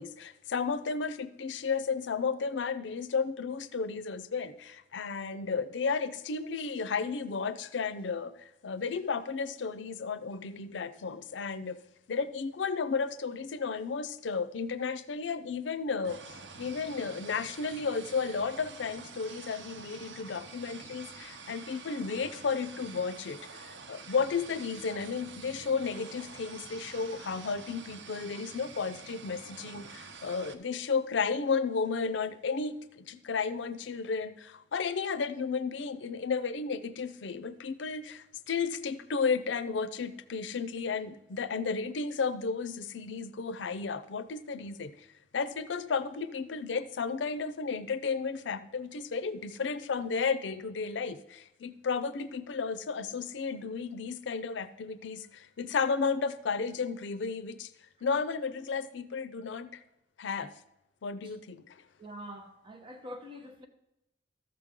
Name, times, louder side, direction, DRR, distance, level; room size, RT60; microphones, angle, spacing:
voice 1, 0.0-11.8 12.1-45.1 45.3-57.7 58.0-59.8 60.2-60.5 61.0-61.8, left 5 dB, 85° left, 0.5 m, -33 dB
sound 1, 16.0-30.5, right 4 dB, 90° right, 0.9 m, -47 dB
voice 2, 62.0-63.7, equal, 30° right, 1.2 m, -45 dB
13.0 x 7.6 x 3.7 m
head